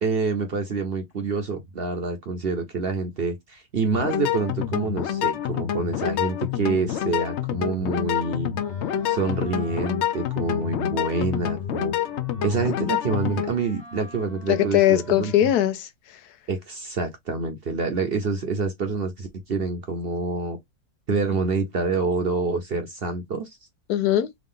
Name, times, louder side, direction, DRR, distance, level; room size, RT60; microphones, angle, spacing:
voice 1, 0.0-8.5 9.0-11.9 12.4-15.3 16.5-20.6 21.1-23.6, right 4 dB, 50° right, 0.8 m, -27 dB
sound 1, 3.9-13.5, left 10 dB, 65° left, 0.7 m, -27 dB
Wind instrument woodwind instrument, 8.5-15.7, left 2 dB, 30° left, 1.1 m, -45 dB
voice 2, 14.5-16.2 23.9-24.3, left 12 dB, 85° left, 1.2 m, -21 dB
3.7 x 2.4 x 3.6 m
omnidirectional pair, 1.6 m